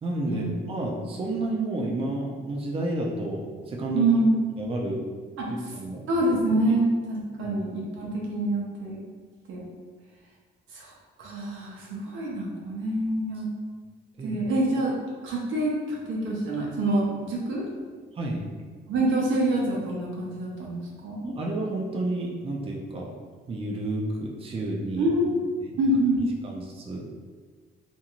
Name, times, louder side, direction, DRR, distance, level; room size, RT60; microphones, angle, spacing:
voice 1, 0.0-4.1 4.6-5.0 5.5-6.0 6.7-6.8 7.4-7.6 14.2-14.4 18.1-18.5 21.2-23.1 23.5-25.1 25.6-25.8 26.4-27.1, right 2 dB, 30° right, -1 dB, 0.4 m, -31 dB
voice 2, 3.9-4.3 5.4-5.5 6.1-9.0 9.5-9.6 10.7-10.9 11.2-13.5 14.2-14.9 15.2-17.6 18.9-21.2 25.0-25.4 25.8-26.3, right 1 dB, 80° right, -3 dB, 0.7 m, -26 dB
2.6 x 2.3 x 2.9 m, 1.5 s
cardioid pair, 90°, 20 cm